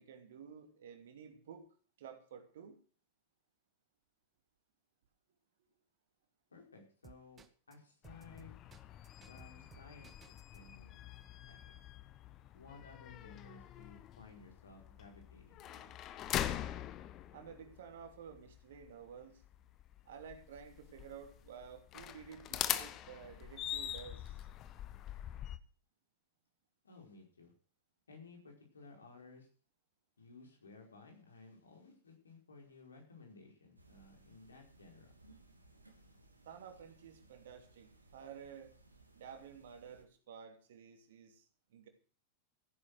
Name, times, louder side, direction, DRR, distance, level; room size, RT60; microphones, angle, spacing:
voice 1, 0.0-1.6 2.0-2.8 17.3-19.4 20.0-24.5 36.4-38.7 39.1-41.9, right 7 dB, 60° right, 6 dB, 2.9 m, -52 dB
voice 2, 6.5-8.6 9.3-10.1 10.5-11.1 11.4-11.7 12.5-15.9 26.8-27.5 28.1-29.5 30.2-35.1, left 3 dB, 75° left, 2 dB, 5.0 m, -57 dB
sound 1, 7.0-7.7 8.0-10.6, right 6 dB, 20° right, 1.4 m, -58 dB
sound 2, 8.0-25.6, left 11 dB, 35° left, 1.2 m, -44 dB
sound 3, 33.8-40.0, right 2 dB, 85° right, 2.4 m, -64 dB
15.0 x 9.9 x 6.4 m, 0.40 s
figure-of-eight pair, 90°, 0 cm